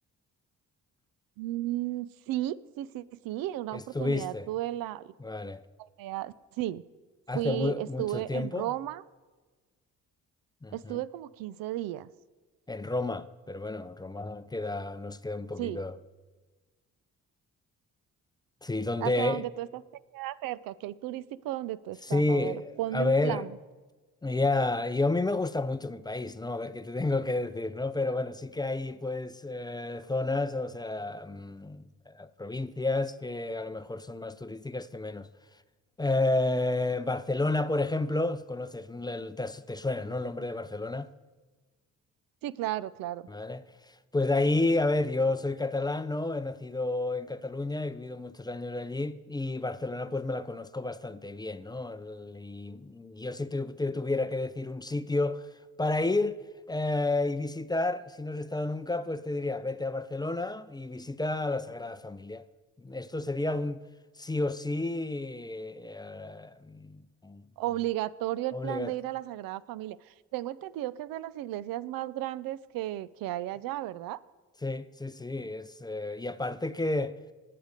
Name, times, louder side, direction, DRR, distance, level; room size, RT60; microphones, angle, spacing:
voice 1, 1.4-5.1 5.8-6.8 7.3-9.0 10.7-12.1 15.6-15.8 19.0-19.7 20.1-23.5 42.4-43.3 67.6-74.2, right 14 dB, 85° right, 0.5 m, -34 dB
voice 2, 3.7-4.5 5.2-5.6 7.3-8.7 10.6-11.0 12.7-15.9 18.6-19.4 22.1-23.5 24.2-35.3 36.0-41.1 43.3-55.5 55.8-56.4 56.7-62.5 62.8-63.8 64.2-67.4 68.5-68.9 74.6-77.2, left 2 dB, 10° left, 0.4 m, -31 dB
18.5 x 6.7 x 5.1 m
cardioid pair, 70°, 33 cm